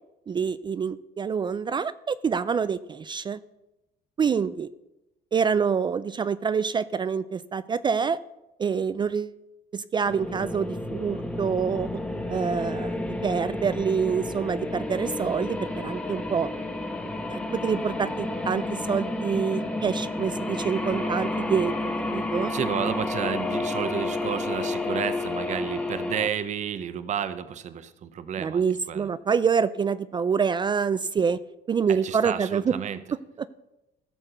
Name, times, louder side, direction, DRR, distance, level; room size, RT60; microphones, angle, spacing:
voice 1, 0.3-3.4 4.2-4.7 5.3-8.2 8.6-9.4 9.7-11.9 12.3-16.5 17.3-21.7 22.1-22.5 28.4-31.4 31.7-32.8 33.4-33.5, right 6 dB, 25° right, 15 dB, 0.3 m, -26 dB
sound 1, 10.1-26.3, left 2 dB, 5° left, 1.1 m, -31 dB
voice 2, 22.5-29.1 31.9-33.0, right 8 dB, 40° right, 13 dB, 0.7 m, -31 dB
15.0 x 6.4 x 6.6 m, 0.93 s
cardioid pair, 130°, 18 cm